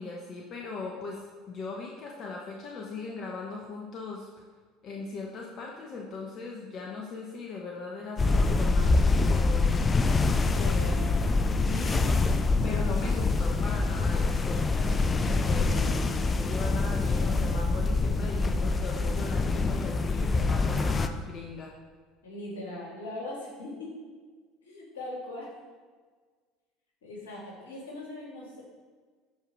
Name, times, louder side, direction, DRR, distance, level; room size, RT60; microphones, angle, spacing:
voice 1, 0.0-4.3 4.8-9.8 10.6-10.7 11.7-12.3 12.6-21.7, left 4 dB, 45° left, -1 dB, 1.3 m, -39 dB
sound 1, 8.2-21.1, left 3 dB, 25° left, 0.7 m, -25 dB
voice 2, 10.5-11.4 11.8-12.2 22.2-23.9 24.6-25.5 27.0-28.6, left 2 dB, 80° left, -4 dB, 3.2 m, -40 dB
13.0 x 5.0 x 4.8 m, 1.5 s
hypercardioid pair, 70°, 0 cm